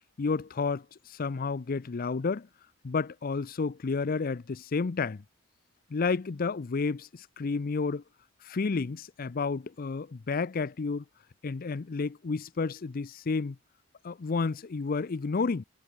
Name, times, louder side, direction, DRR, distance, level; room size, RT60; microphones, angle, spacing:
voice 1, 0.2-2.5 2.8-5.2 5.9-8.0 8.4-11.0 11.4-13.6 14.0-15.6, left 4 dB, 45° left, 0.5 m, -31 dB
head